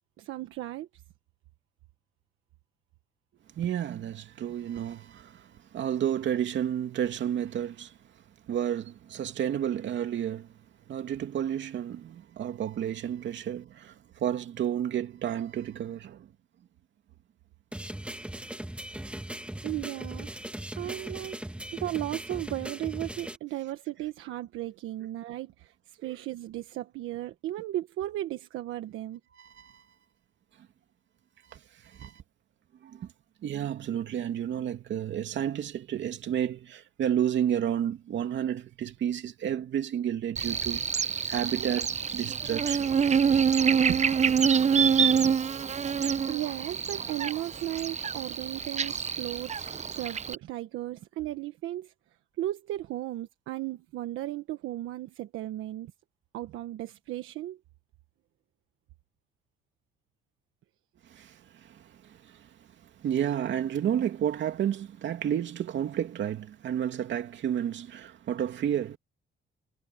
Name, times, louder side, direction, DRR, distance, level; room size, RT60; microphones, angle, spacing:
voice 1, 0.2-0.9 19.6-20.3 20.7-21.4 21.7-29.2 46.0-49.7 50.0-51.9 52.4-55.9 56.3-57.6, right 14 dB, 90° right, 1.3 m, -35 dB
voice 2, 3.6-8.0 8.5-10.5 10.9-16.3 20.8-20.9 26.0-26.1 29.3-29.8 31.5-32.2 32.8-33.1 33.4-42.8 43.9-44.0 61.1-62.5 63.0-69.0, right 10 dB, 70° right, 2.7 m, -31 dB
sound 1, 17.7-23.4, right 1 dB, 5° right, 1.7 m, -39 dB
Buzz, 40.4-50.4, right 7 dB, 35° right, 0.8 m, -26 dB
cardioid pair, 90°, 20 cm